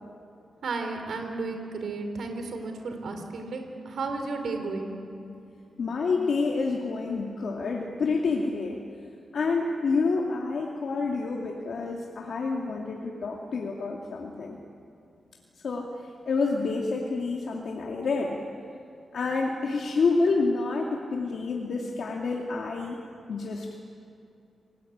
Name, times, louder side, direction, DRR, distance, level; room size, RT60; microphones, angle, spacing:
voice 1, 0.6-4.9, right 3 dB, 75° right, 5 dB, 3.9 m, -33 dB
voice 2, 5.8-8.8 9.3-14.6 15.6-15.9 16.3-18.4 19.1-23.0 23.3-23.8, left 4 dB, 65° left, -1 dB, 2.4 m, -28 dB
28.0 x 19.5 x 8.8 m, 2.7 s
wide cardioid pair, 105°, 0 cm